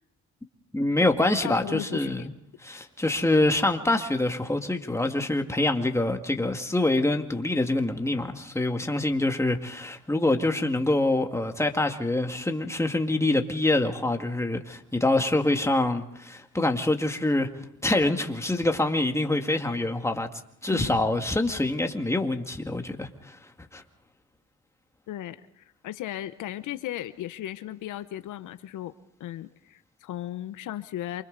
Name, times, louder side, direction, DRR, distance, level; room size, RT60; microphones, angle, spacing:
voice 1, 0.7-2.3 2.6-17.5 17.8-20.3 20.6-23.4 23.7-23.8, left 2 dB, 10° left, 5 dB, 2.0 m, -25 dB
voice 2, 1.4-2.3 20.7-20.9 25.1-28.9 29.2-31.2, left 12 dB, 80° left, 12 dB, 1.0 m, -36 dB
28.0 x 25.0 x 4.0 m, 0.74 s
cardioid pair, 90°, 30 cm